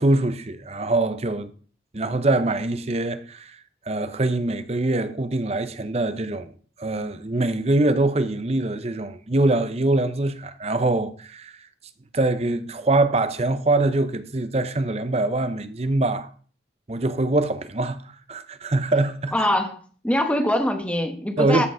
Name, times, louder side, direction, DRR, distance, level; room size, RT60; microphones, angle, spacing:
voice 1, 0.0-1.5 1.9-3.6 3.9-6.5 6.8-11.5 12.1-16.3 16.9-18.0 18.3-19.3 21.4-21.7, right 2 dB, 35° right, 0.8 m, -23 dB
voice 2, 19.3-19.8 20.0-21.7, left 1 dB, 5° left, 1.3 m, -23 dB
13.5 x 5.2 x 4.9 m
head